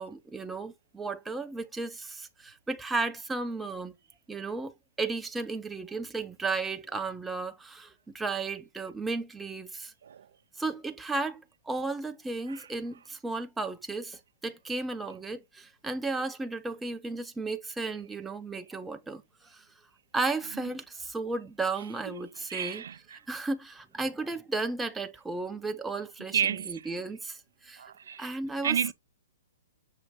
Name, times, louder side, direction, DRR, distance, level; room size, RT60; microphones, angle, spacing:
voice 1, 0.0-3.9 4.3-9.9 10.6-19.6 20.1-22.8 23.3-27.8 28.2-28.9, right 3 dB, 5° right, 0.5 m, -34 dB
voice 2, 20.4-20.7 21.8-23.2 26.3-27.0 27.8-28.3 28.6-28.9, right 8 dB, 70° right, 0.3 m, -33 dB
6.2 x 2.5 x 3.4 m
hypercardioid pair, 135°, 0 cm